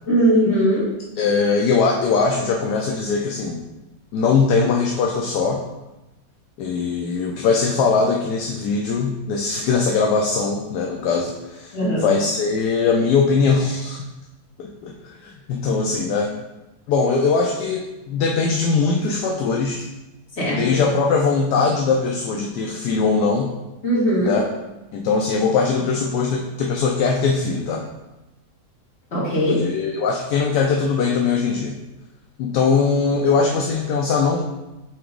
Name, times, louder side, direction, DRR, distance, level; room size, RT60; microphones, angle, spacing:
voice 1, 0.1-0.8 11.7-12.1 20.4-20.6 23.8-24.4 29.1-29.6, equal, 40° left, -8 dB, 2.3 m, -19 dB
voice 2, 1.2-3.6 4.1-5.7 6.6-14.1 14.6-16.3 16.9-19.9 20.5-23.5 24.2-24.4 24.9-27.8 29.6-31.8 32.4-34.4, left 4 dB, 75° left, 0 dB, 1.2 m, -21 dB
8.7 x 2.9 x 3.7 m, 1.0 s
omnidirectional pair, 1.8 m